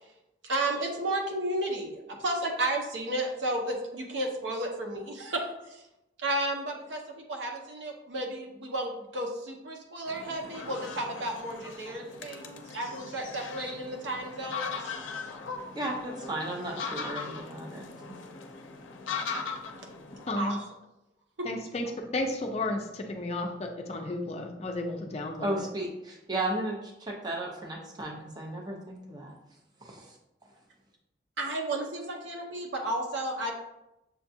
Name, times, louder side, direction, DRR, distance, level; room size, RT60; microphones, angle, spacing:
voice 1, 0.4-5.8 6.2-14.8 20.4-20.6 21.4-21.5 31.4-33.5, right 1 dB, 75° right, 1 dB, 0.8 m, -33 dB
sound 1, 10.1-20.3, left 5 dB, 85° left, 0.5 m, -39 dB
voice 2, 15.7-18.2 25.4-29.3 29.8-30.1, right 1 dB, 20° right, 0 dB, 0.6 m, -35 dB
voice 3, 20.3-20.6 21.4-25.7, left 2 dB, 35° left, 3 dB, 0.4 m, -33 dB
6.7 x 2.3 x 2.7 m, 0.90 s
head